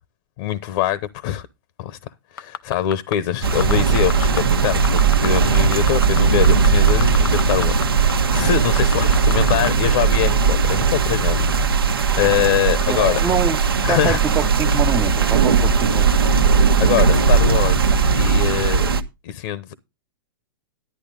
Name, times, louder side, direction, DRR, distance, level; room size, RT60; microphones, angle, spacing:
voice 1, 0.4-1.5 1.8-11.5 12.2-13.3 13.8-14.2 16.8-18.9 19.2-19.7, left 12 dB, 50° left, 0.9 m, -23 dB
sound 1, 2.4-3.1 3.5-4.4 4.7-5.3 5.5-7.8 8.1-8.2 8.6-9.7 10.1-10.2, left 8 dB, 80° left, 0.7 m, -29 dB
sound 2, 3.4-19.0, right 5 dB, 85° right, 1.1 m, -18 dB
voice 2, 12.9-13.6 13.9-16.2, right 7 dB, 20° right, 0.7 m, -25 dB
11.0 x 9.9 x 3.8 m
hypercardioid pair, 115°, 12 cm